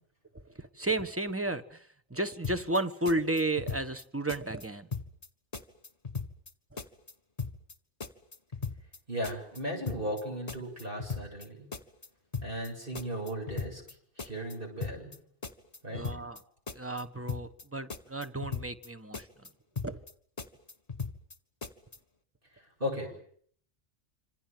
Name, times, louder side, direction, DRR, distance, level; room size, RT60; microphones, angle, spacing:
voice 1, 0.6-1.8 2.1-4.9 6.7-6.8 15.9-16.4 16.7-19.3 19.8-20.0, right 2 dB, 10° right, 11 dB, 1.3 m, -33 dB
sound 1, 2.4-2.8 3.0-4.0 4.3-4.6 4.9-5.3 5.5-6.5 6.8-7.1 7.4-7.7 8.0-9.0 9.2-9.6 9.9-10.2 10.5-11.4 11.7-12.1 12.3-12.7 12.9-13.9 14.2-14.5 14.8-15.2 15.4-16.4 16.7-17.0 17.3-17.6 17.9-18.9 19.1-19.5 19.8-20.1 20.4-21.3 21.6-22.0, left 5 dB, 30° left, 1.8 m, -38 dB
voice 2, 9.1-11.7 12.4-13.8 14.2-15.1 15.8-16.1 22.8-23.1, equal, 50° right, 1 dB, 7.6 m, -36 dB
27.0 x 26.5 x 7.8 m, 0.62 s
omnidirectional pair, 1.2 m